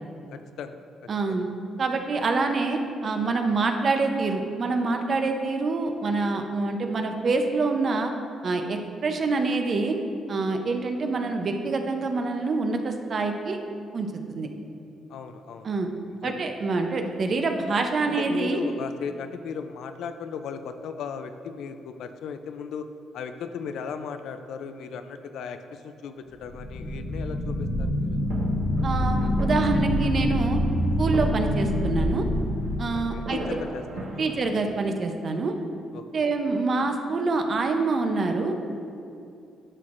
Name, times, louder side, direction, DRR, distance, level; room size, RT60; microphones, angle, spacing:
voice 1, 0.3-1.4 15.1-15.7 16.1-16.4 18.1-22.9 23.1-28.2 32.9-34.3 35.9-36.3, left 6 dB, 80° left, 8 dB, 0.4 m, -37 dB
voice 2, 1.1-1.5 1.8-8.1 8.4-10.0 10.3-13.6 13.9-14.5 15.6-15.9 16.2-18.6 28.8-30.6 31.0-32.2 32.8-33.4 34.2-35.5 36.1-38.5, right 3 dB, 45° right, 5 dB, 0.6 m, -26 dB
sound 1, 26.4-33.5, left 1 dB, 40° left, 1.0 m, -26 dB
sound 2, 28.2-34.5, right 2 dB, 80° right, 1.2 m, -41 dB
11.0 x 6.0 x 2.5 m, 2.6 s
cardioid pair, 90°, 0 cm